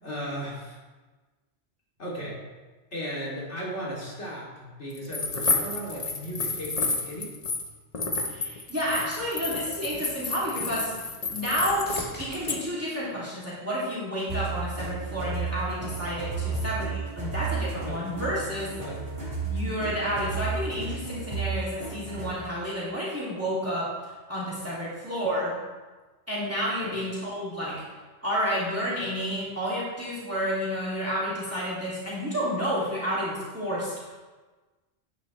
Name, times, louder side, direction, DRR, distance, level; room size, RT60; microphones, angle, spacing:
voice 1, 0.0-0.8 2.0-2.4 2.9-7.3 16.4-16.7 17.2-17.3 17.9-18.0 18.3-19.1 26.8-27.0, equal, 70° left, -5 dB, 3.0 m, -36 dB
sound 1, 5.0-7.7 7.9-12.0 12.3-12.6, left 3 dB, 35° left, 1.0 m, -30 dB
voice 2, 8.3-10.9 11.3-18.7 19.4-25.5 26.3-27.8 28.2-34.2, equal, 10° right, -8 dB, 2.5 m, -30 dB
sound 2, 10.8-14.3 14.9-15.5 23.3-23.4, equal, 10° left, 2.1 m, -48 dB
sound 3, 14.3-22.5, right 5 dB, 35° right, 3.1 m, -33 dB
10.5 x 9.6 x 3.2 m, 1.3 s
omnidirectional pair, 1.2 m